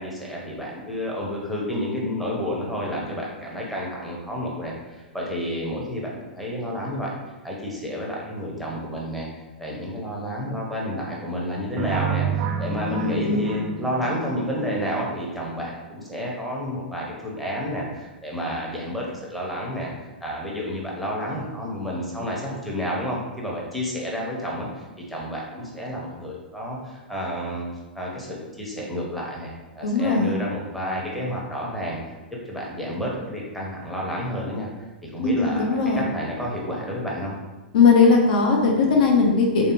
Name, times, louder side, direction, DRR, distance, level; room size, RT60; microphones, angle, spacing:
voice 1, 0.0-7.1 7.4-9.3 9.6-19.9 20.2-27.6 27.9-32.1 32.5-34.7 35.0-37.4, equal, ahead, -4 dB, 0.7 m, -30 dB
sound 1, 11.8-14.6, right 6 dB, 35° right, 0.4 m, -29 dB
voice 2, 12.9-13.5 29.8-30.3 35.2-36.0 37.7-39.7, left 4 dB, 50° left, 0 dB, 0.7 m, -19 dB
3.3 x 2.7 x 2.6 m, 1.1 s
figure-of-eight pair, 100°, 6 cm